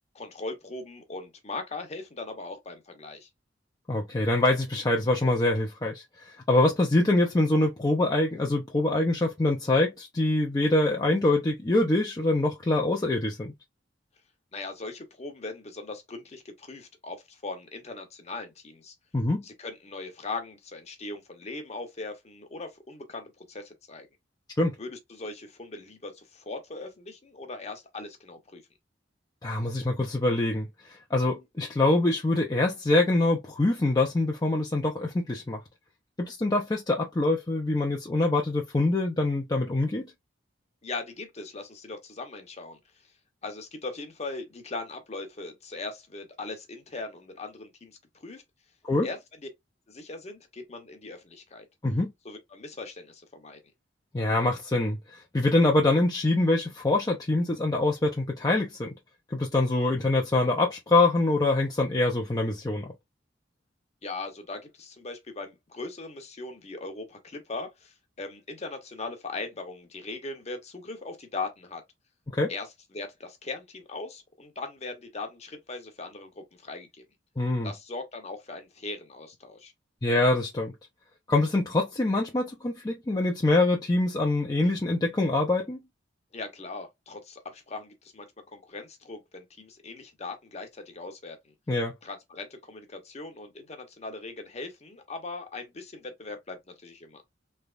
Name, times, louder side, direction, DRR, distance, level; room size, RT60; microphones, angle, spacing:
voice 1, 0.1-3.3 14.5-18.9 19.4-24.1 24.8-28.6 40.8-42.8 43.4-48.0 48.2-48.4 49.0-49.5 49.9-51.7 52.2-53.6 64.0-71.8 72.5-72.7 72.9-76.9 77.6-79.7 86.3-91.5 92.0-97.2, left 3 dB, 35° left, 0.9 m, -39 dB
voice 2, 3.9-13.5 19.1-19.4 24.6-24.7 29.4-35.6 36.2-40.1 48.8-49.1 51.8-52.1 54.1-58.9 59.3-62.9 72.3-72.5 77.4-77.7 80.0-80.7 81.3-85.8 91.7-91.9, left 2 dB, 20° left, 0.5 m, -25 dB
3.3 x 2.9 x 2.4 m
head